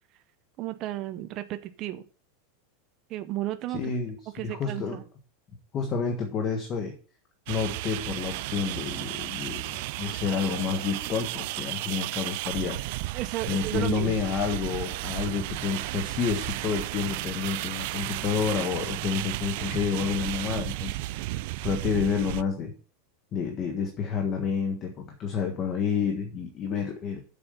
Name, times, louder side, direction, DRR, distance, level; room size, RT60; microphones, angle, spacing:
voice 1, 0.6-2.1 3.1-3.8 4.3-5.1 13.1-14.2, right 14 dB, 30° right, 9 dB, 0.7 m, -33 dB
voice 2, 3.7-4.2 4.4-5.0 5.7-7.0 7.5-12.8 13.5-21.0 21.6-22.7 23.3-27.2, left 6 dB, 25° left, 4 dB, 1.4 m, -29 dB
sound 1, 7.5-22.4, right 19 dB, 50° right, 0.4 m, -33 dB
7.7 x 7.1 x 6.9 m, 0.41 s
supercardioid pair, 170°, 0 cm